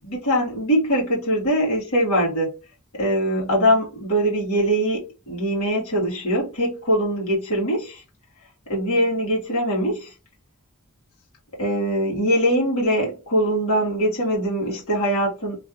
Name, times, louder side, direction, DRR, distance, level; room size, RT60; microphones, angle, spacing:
voice 1, 0.0-2.5 3.0-8.0 8.7-10.1 11.6-15.6, equal, 90° left, 1.8 m, -22 dB
3.2 x 2.5 x 2.9 m
head